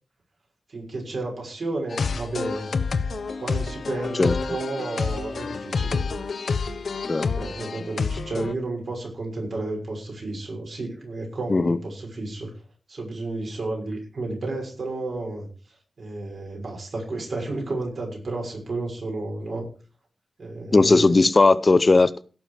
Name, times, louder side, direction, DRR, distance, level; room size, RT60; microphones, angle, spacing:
voice 1, 0.7-2.7 3.3-6.0 7.3-12.5 12.9-15.5 16.0-19.7 20.4-21.1, right 2 dB, 55° right, 6.2 m, -32 dB
sound 1, 1.9-8.5, left 4 dB, 65° left, 1.0 m, -28 dB
voice 2, 20.7-22.2, left 3 dB, 35° left, 0.6 m, -17 dB
17.0 x 7.2 x 4.9 m
wide cardioid pair, 120°, 0 cm